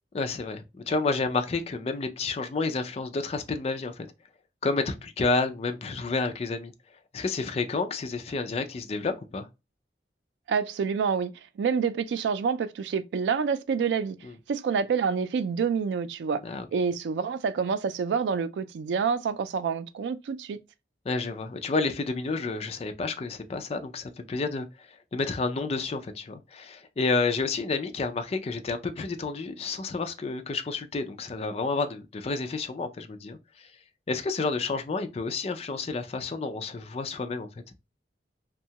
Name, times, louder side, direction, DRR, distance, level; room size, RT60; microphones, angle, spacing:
voice 1, 0.1-4.1 4.6-6.7 7.1-9.5 14.2-14.3 16.4-16.7 21.1-33.7 34.1-37.5, left 3 dB, 35° left, 0.4 m, -30 dB
voice 2, 10.5-11.3 11.6-14.2 14.5-16.4 16.7-20.6, right 6 dB, 80° right, 0.3 m, -27 dB
2.7 x 2.2 x 2.8 m
head